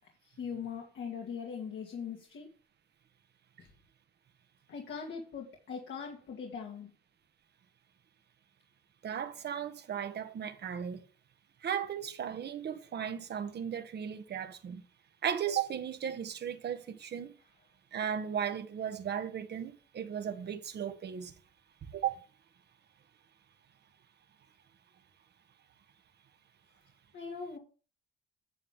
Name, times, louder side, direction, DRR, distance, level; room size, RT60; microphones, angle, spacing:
voice 1, 0.2-2.5 3.6-3.7 4.7-6.9 27.1-27.6, left 6 dB, 70° left, 2.2 m, -41 dB
voice 2, 9.0-11.0 11.6-14.8 15.2-17.3 17.9-21.3 21.8-22.2, right 8 dB, 55° right, 1.3 m, -36 dB
10.0 x 7.3 x 3.7 m
cardioid pair, 90°, 20 cm